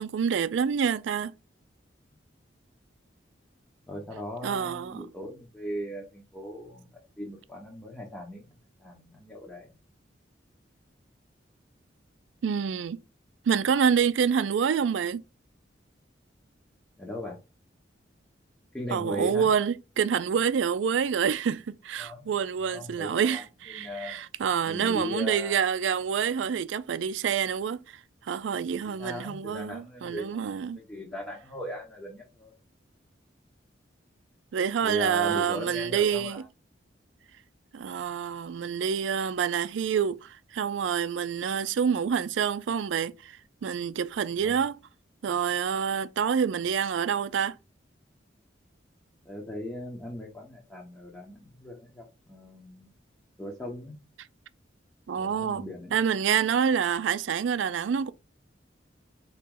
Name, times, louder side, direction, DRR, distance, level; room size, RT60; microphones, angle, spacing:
voice 1, 0.0-1.4 4.4-5.1 12.4-13.0 13.5-15.2 18.9-30.8 34.5-36.4 37.7-44.8 45.2-47.5 55.1-55.6 55.9-58.1, right 7 dB, 85° right, 0.4 m, -27 dB
voice 2, 3.9-8.5 8.8-9.7 17.0-17.4 18.7-19.5 22.0-22.3 22.7-23.4 23.7-24.2 24.6-25.7 28.8-30.4 30.7-32.5 34.8-36.4 44.4-44.6 49.2-52.9 53.4-54.0 55.1-55.9, left 1 dB, 10° left, 0.8 m, -38 dB
4.2 x 3.0 x 3.7 m
head